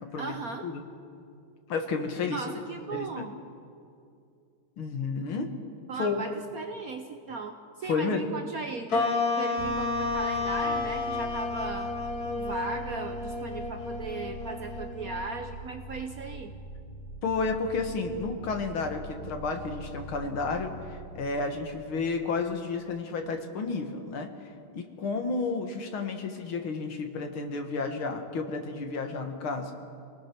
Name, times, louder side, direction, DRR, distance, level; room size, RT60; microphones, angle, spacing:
voice 1, 0.2-0.7 2.3-3.3 5.9-11.9 12.2-16.5, right 3 dB, 55° right, 6 dB, 1.0 m, -37 dB
voice 2, 1.7-2.5 2.9-3.3 4.8-5.5 6.0-6.2 7.8-8.3 17.2-29.7, left 4 dB, 70° left, 5 dB, 2.4 m, -31 dB
sound 1, 8.9-15.6, left 3 dB, 50° left, 1.9 m, -31 dB
sound 2, 9.6-23.0, right 1 dB, 30° left, 1.5 m, -43 dB
27.5 x 19.0 x 6.1 m, 2.5 s
omnidirectional pair, 2.4 m